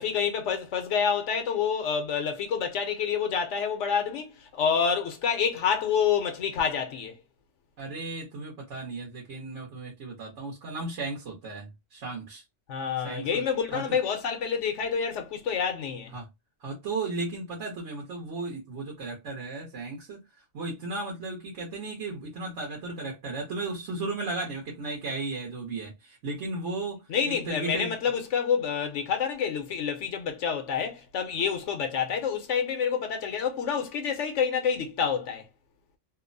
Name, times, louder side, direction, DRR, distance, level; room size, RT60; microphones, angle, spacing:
voice 1, 0.0-7.2 12.7-16.1 27.1-35.4, left 7 dB, 75° left, 1.0 m, -28 dB
voice 2, 7.8-12.4 13.0-13.4 13.7-13.8 16.1-16.3 16.6-20.2 20.5-27.9, right 3 dB, 70° right, 1.2 m, -35 dB
2.9 x 2.0 x 2.5 m
omnidirectional pair, 1.3 m